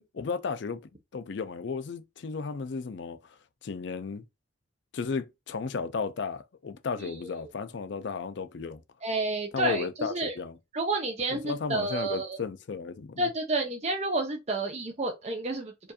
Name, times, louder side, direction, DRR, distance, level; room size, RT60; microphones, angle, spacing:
voice 1, 0.0-4.2 4.9-8.8 9.5-10.6 11.3-13.3, left 5 dB, 55° left, 0.4 m, -34 dB
voice 2, 9.0-10.3 10.7-12.4 13.2-15.9, right 2 dB, 30° right, 0.6 m, -30 dB
4.5 x 2.5 x 2.7 m
head